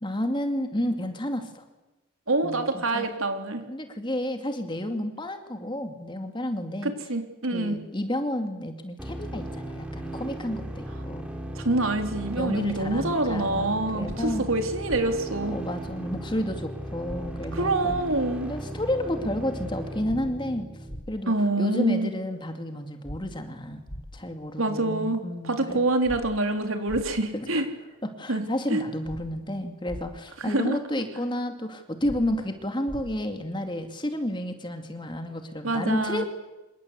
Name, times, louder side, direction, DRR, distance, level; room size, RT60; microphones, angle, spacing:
voice 1, 0.0-1.6 2.4-3.1 3.7-6.9 7.5-11.3 12.3-14.5 15.5-18.0 18.5-20.7 21.1-25.8 27.3-27.6 28.0-36.2, left 1 dB, 20° left, 6 dB, 2.4 m, -31 dB
voice 2, 2.3-3.6 6.8-7.8 11.5-15.6 17.5-18.5 21.3-22.2 24.6-27.7 28.3-28.8 30.4-30.8 35.6-36.2, right 2 dB, 75° right, 6 dB, 3.7 m, -26 dB
sound 1, 9.0-21.0, right 1 dB, 5° right, 3.7 m, -37 dB
sound 2, 14.0-14.2 14.9-15.0 17.0-17.2 17.9-18.0 20.0-20.2 20.9-21.0 23.0-23.2 23.9-24.0 26.0-26.2 26.9-27.0 29.0-29.2 29.9-30.0 32.0-32.2 32.9-33.0, equal, 50° left, 5.5 m, -38 dB
27.0 x 23.5 x 8.3 m, 1.1 s
head